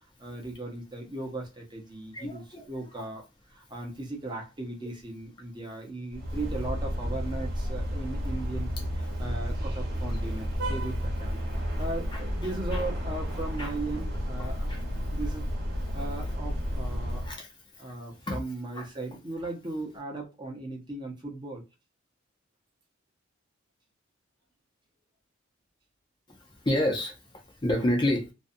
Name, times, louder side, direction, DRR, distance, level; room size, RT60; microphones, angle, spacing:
voice 1, 0.2-3.2 3.5-11.4 11.8-14.7 15.1-17.4 17.8-21.6, right 2 dB, 20° right, 0.7 m, -37 dB
voice 2, 2.1-2.7 2.9-3.0 4.8-4.9 12.1-12.8 13.6-13.7 14.4-14.8 15.9-16.1 17.2-17.5 17.9-18.0 18.3-18.4 18.7-18.8 26.3-28.3, left 1 dB, 20° left, 0.5 m, -30 dB
sound 1, 6.1-17.3, equal, 50° right, 0.9 m, -32 dB
2.5 x 2.2 x 2.5 m
head